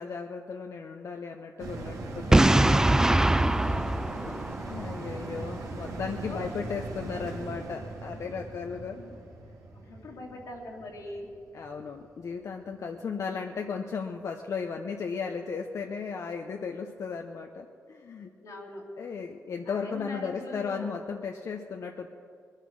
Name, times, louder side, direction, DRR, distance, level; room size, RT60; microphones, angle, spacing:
voice 1, 0.0-2.8 4.7-9.0 11.5-18.3 19.0-22.1, left 5 dB, 60° left, 3 dB, 0.8 m, -35 dB
sound 1, 1.6-12.3 12.7-12.8, right 2 dB, 80° right, 2.4 m, -39 dB
voice 2, 2.0-2.9 3.6-4.5 5.9-6.5 9.0-9.1 9.9-11.3 12.9-13.6 18.4-18.9 19.6-21.1, left 2 dB, 80° left, -3 dB, 2.7 m, -43 dB
Boom, 2.3-5.2, right 1 dB, 10° right, 0.4 m, -22 dB
21.0 x 10.5 x 6.4 m, 2.4 s
cardioid pair, 80°, 6 cm